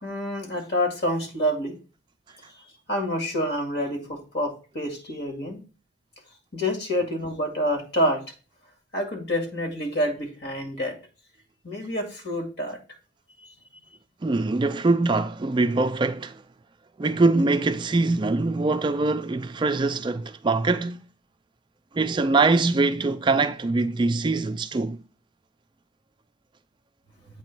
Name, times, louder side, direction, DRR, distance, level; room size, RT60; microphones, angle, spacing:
voice 1, 0.0-1.8 2.9-5.6 6.5-8.2 8.9-11.0 11.6-12.8, equal, 55° left, 2.2 m, -27 dB
voice 2, 14.2-16.4 17.0-21.0 21.9-25.0, right 3 dB, 25° right, 0.3 m, -23 dB
8.2 x 3.0 x 5.9 m
head